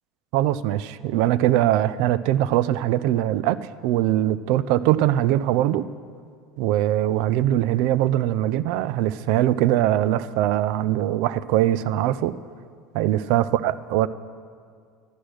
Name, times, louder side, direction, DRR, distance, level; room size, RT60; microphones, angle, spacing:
voice 1, 0.3-5.8 6.6-12.3 12.9-14.1, right 13 dB, 65° right, 16 dB, 0.4 m, -22 dB
11.5 x 10.0 x 6.3 m, 2.1 s
cardioid pair, 155°, 0 cm